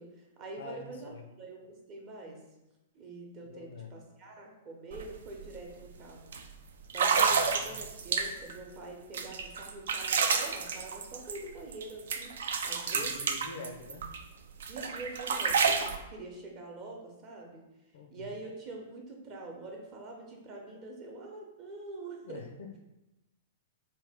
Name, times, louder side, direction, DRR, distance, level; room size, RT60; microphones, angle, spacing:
voice 1, 0.0-2.4 2.9-6.3 6.9-13.2 14.7-17.7 18.1-22.5, right 2 dB, 35° right, 1 dB, 0.8 m, -45 dB
voice 2, 0.6-1.2 3.4-3.9 7.3-7.7 12.9-14.1 17.9-18.3 22.2-22.8, left 3 dB, 60° left, 5 dB, 0.4 m, -46 dB
sound 1, 4.9-5.0 5.4-5.7 6.3-6.4 6.9-8.6 9.1-11.8 12.1-14.2 14.6-16.0, right 5 dB, 60° right, 0.3 m, -29 dB
3.5 x 2.3 x 3.5 m, 0.95 s
figure-of-eight pair, 105°, 0 cm